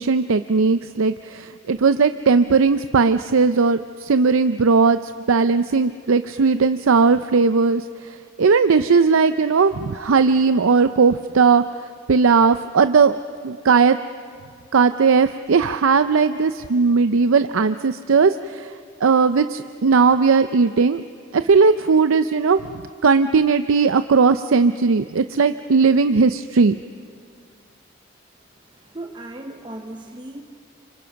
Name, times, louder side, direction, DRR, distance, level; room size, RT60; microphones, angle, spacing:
voice 1, 0.0-11.6 12.1-13.2 13.4-14.0 14.7-18.7 19.0-21.0 21.3-22.6 23.0-26.8, right 5 dB, 75° right, 11 dB, 0.5 m, -17 dB
voice 2, 28.7-30.4, right 1 dB, 20° right, 4 dB, 0.8 m, -36 dB
30.0 x 25.5 x 5.9 m, 2.2 s
head